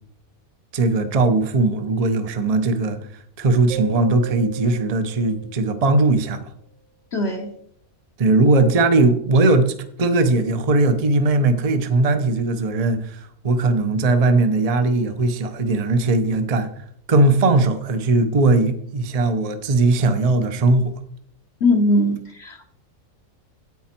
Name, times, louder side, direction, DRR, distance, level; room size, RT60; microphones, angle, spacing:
voice 1, 0.7-3.0 3.4-6.4 8.2-16.7 17.1-20.9, right 2 dB, 35° right, 0.8 m, -19 dB
sound 1, 3.7-6.3, right 4 dB, 60° right, 2.3 m, -37 dB
voice 2, 7.1-7.5 21.6-22.7, left 1 dB, 50° left, 1.1 m, -20 dB
9.5 x 8.6 x 4.4 m
omnidirectional pair, 1.5 m